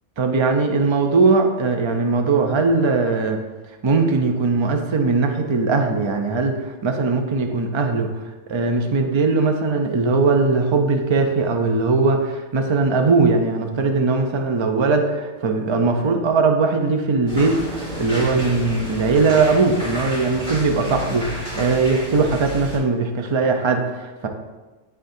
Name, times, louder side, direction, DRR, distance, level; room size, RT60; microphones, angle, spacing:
voice 1, 0.2-3.4 3.8-8.1 8.5-24.3, right 4 dB, 50° right, 4 dB, 0.3 m, -20 dB
sound 1, 17.3-22.8, left 1 dB, 65° right, 2.8 m, -31 dB
10.5 x 3.8 x 2.7 m, 1.2 s
omnidirectional pair, 1.4 m